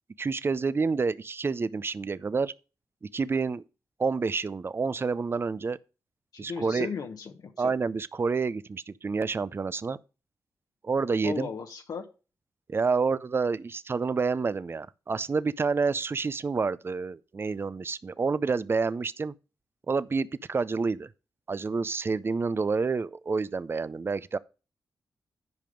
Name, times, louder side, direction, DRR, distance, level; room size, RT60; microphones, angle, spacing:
voice 1, 0.2-2.5 3.0-3.6 4.0-5.8 6.4-6.9 7.6-10.0 10.8-11.5 12.7-19.3 19.9-21.1 21.5-24.4, right 4 dB, 35° right, 0.5 m, -28 dB
voice 2, 6.3-7.7 11.2-12.1, left 5 dB, 70° left, 1.1 m, -36 dB
10.5 x 5.2 x 5.1 m
cardioid pair, 70°, 7 cm